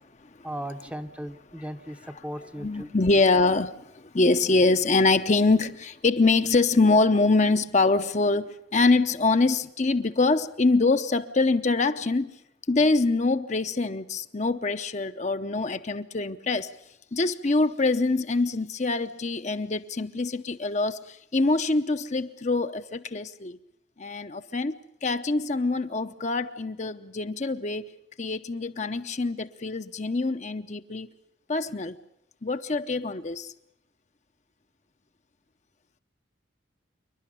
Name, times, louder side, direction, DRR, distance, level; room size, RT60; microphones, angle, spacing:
voice 1, 0.4-2.9, equal, 5° right, 0.8 m, -37 dB
voice 2, 2.6-12.3 12.7-16.7 17.1-23.6 24.0-24.7 25.0-27.9 28.2-31.1 31.5-32.0 32.4-33.5, left 3 dB, 40° left, 0.7 m, -24 dB
27.5 x 11.5 x 10.0 m
head